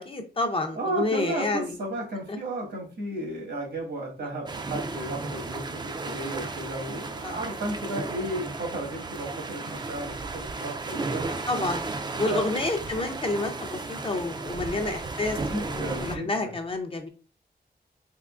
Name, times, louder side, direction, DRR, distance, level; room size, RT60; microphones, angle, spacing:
voice 1, 0.0-1.7 2.3-2.4 7.2-7.4 11.3-11.8 12.2-17.1, left 2 dB, 30° left, 5 dB, 0.5 m, -29 dB
voice 2, 0.7-11.2 12.3-12.5 14.4-14.7 15.4-16.5, right 1 dB, 85° right, -1 dB, 1.4 m, -34 dB
sound 1, 4.5-16.2, right 3 dB, 25° right, 0.3 m, -34 dB
3.6 x 3.0 x 2.4 m, 0.38 s
wide cardioid pair, 130°, 17 cm